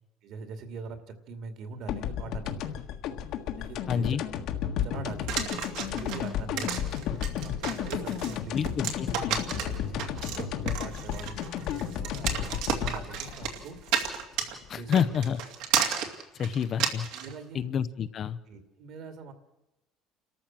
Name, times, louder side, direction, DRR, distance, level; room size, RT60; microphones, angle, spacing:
voice 1, 0.2-2.8 3.5-4.2 4.8-5.5 5.9-7.1 7.4-8.7 9.0-13.8 14.8-15.2 17.1-17.7 18.5-19.3, right 4 dB, 55° right, 8 dB, 2.5 m, -43 dB
sound 1, 1.9-14.7, left 9 dB, 60° left, 1.6 m, -33 dB
voice 2, 3.9-4.2 8.5-9.4 14.7-15.4 16.4-17.1 17.5-18.4, left 7 dB, 35° left, 13 dB, 0.7 m, -28 dB
sound 2, 5.3-17.3, right 8 dB, 70° right, 2.4 m, -32 dB
29.0 x 13.5 x 7.5 m, 0.98 s
cardioid pair, 155°, 0 cm